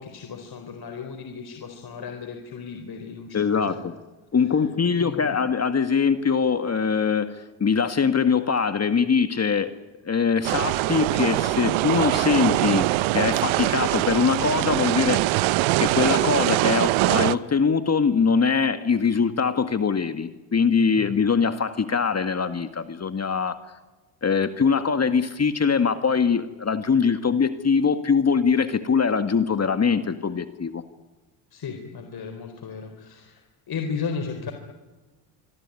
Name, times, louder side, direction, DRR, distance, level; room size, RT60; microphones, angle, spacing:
voice 1, 0.0-3.9 4.5-4.6 4.9-5.4 21.0-21.2 31.5-33.4 33.7-34.5, left 5 dB, 50° left, 5 dB, 4.2 m, -35 dB
voice 2, 3.3-3.9 4.3-7.4 7.6-9.7 10.1-15.5 15.8-23.5 24.2-30.8, left 5 dB, 30° left, 9 dB, 1.8 m, -22 dB
sound 1, 10.4-17.4, right 18 dB, 70° right, 1.0 m, -23 dB
25.5 x 23.0 x 9.8 m, 1.2 s
supercardioid pair, 65°, 48 cm